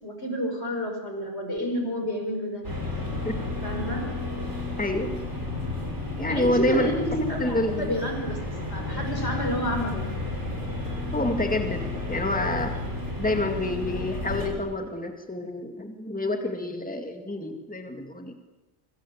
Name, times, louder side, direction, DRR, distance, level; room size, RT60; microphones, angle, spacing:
voice 1, 0.0-2.6 3.6-4.1 6.3-8.4 8.7-10.1, equal, 60° left, 3 dB, 6.0 m, -29 dB
sound 1, 2.6-14.5, left 2 dB, 65° right, 6.5 m, -32 dB
voice 2, 6.2-6.9 7.4-7.9 11.1-11.8 12.1-12.8 13.2-18.3, left 1 dB, 5° left, 4 dB, 2.1 m, -28 dB
25.0 x 24.5 x 8.7 m, 1.1 s
omnidirectional pair, 1.3 m